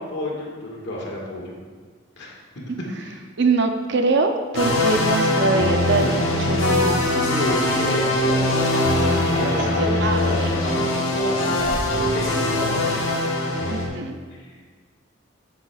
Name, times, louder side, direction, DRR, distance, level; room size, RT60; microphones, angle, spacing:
voice 1, 0.0-1.5 2.2-2.3 3.0-3.2 7.2-11.7 12.0-13.7 14.3-14.7, left 1 dB, 60° left, -3 dB, 1.7 m, -31 dB
voice 2, 3.4-7.1 9.8-10.5 13.7-14.2, right 3 dB, 55° right, 5 dB, 0.6 m, -23 dB
sound 1, 4.5-13.9, left 1 dB, 75° left, 1.4 m, -22 dB
10.0 x 7.4 x 2.4 m, 1.5 s
head